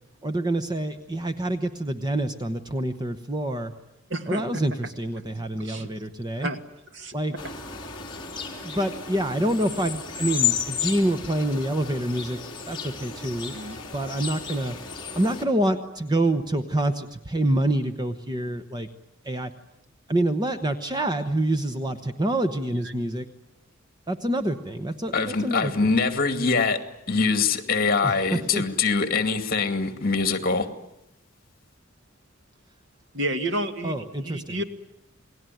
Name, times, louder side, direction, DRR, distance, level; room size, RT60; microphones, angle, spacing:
voice 1, 0.2-3.7 4.3-6.5 7.1-7.3 8.6-12.4 12.7-13.5 13.9-14.8 15.1-18.9 19.2-19.5 20.1-23.3 24.1-25.9 28.0-28.6 33.8-34.6, right 1 dB, 20° right, 9 dB, 1.0 m, -26 dB
voice 2, 4.1-4.4 5.6-5.9 6.4-6.6 6.9-7.1 13.5-13.8 33.1-34.6, right 1 dB, 65° right, 7 dB, 2.1 m, -30 dB
sound 1, 7.4-15.4, left 8 dB, 25° left, 3.7 m, -33 dB
voice 3, 25.1-26.8 27.1-30.7, left 4 dB, 45° left, 8 dB, 2.3 m, -23 dB
28.5 x 20.0 x 9.3 m, 0.85 s
head